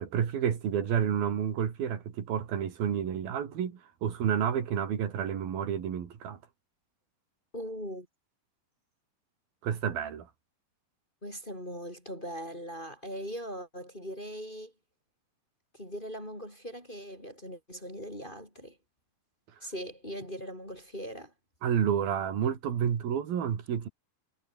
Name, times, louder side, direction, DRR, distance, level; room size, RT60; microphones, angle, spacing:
voice 1, 0.0-6.4 9.6-10.3 21.6-23.9, right 8 dB, 80° right, 4.6 m, -30 dB
voice 2, 7.5-8.1 11.2-14.7 15.7-18.8 19.6-21.3, equal, 10° left, 6.6 m, -40 dB
omnidirectional pair, 4.2 m